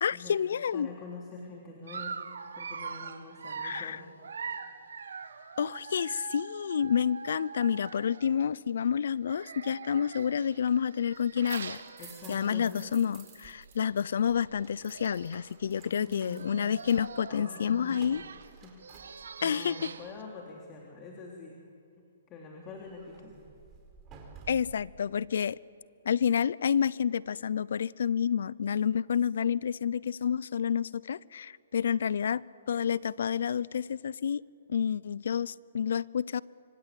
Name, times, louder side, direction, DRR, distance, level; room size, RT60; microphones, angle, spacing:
voice 1, 0.0-0.9 3.6-4.0 5.6-11.8 12.3-18.2 19.4-19.9 24.5-25.6 26.0-32.4 32.7-34.4 34.7-36.4, left 8 dB, 70° left, 0.6 m, -29 dB
voice 2, 0.7-2.2 2.6-4.1 12.0-12.9 15.9-16.6 17.3-18.1 18.6-18.7 19.4-21.6 22.3-23.4, left 4 dB, 25° left, 3.4 m, -45 dB
Dog, 1.9-8.5 9.2-12.8 13.2-13.4 13.7-13.8 14.7-14.8 14.9-15.5 16.1-20.2, right 6 dB, 80° right, 1.7 m, -43 dB
sound 1, 11.0-13.8 14.0-19.6 22.7-24.9, right 6 dB, 20° right, 4.4 m, -54 dB
25.0 x 25.0 x 8.5 m
hypercardioid pair, 145°, 0 cm